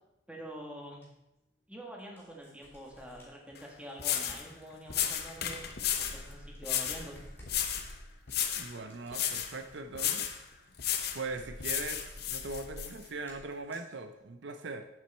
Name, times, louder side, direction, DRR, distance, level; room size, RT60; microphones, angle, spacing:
voice 1, 0.3-1.0 1.7-5.6 6.0-7.1, equal, 5° right, -1 dB, 1.7 m, -46 dB
sound 1, 1.0-1.1 2.0-4.4 4.7-13.9, equal, 10° left, 2.9 m, -51 dB
sound 2, 3.6-3.7 4.0-4.4 4.9-6.2 6.6-7.0 7.5-7.9 8.3-8.7 9.1-9.5 9.9-10.4 10.8-11.2 11.6-12.9, left 10 dB, 55° left, 0.8 m, -33 dB
voice 2, 8.6-10.4 11.1-14.9, right 3 dB, 70° right, 9 dB, 0.6 m, -40 dB
8.4 x 8.3 x 4.3 m, 0.93 s
head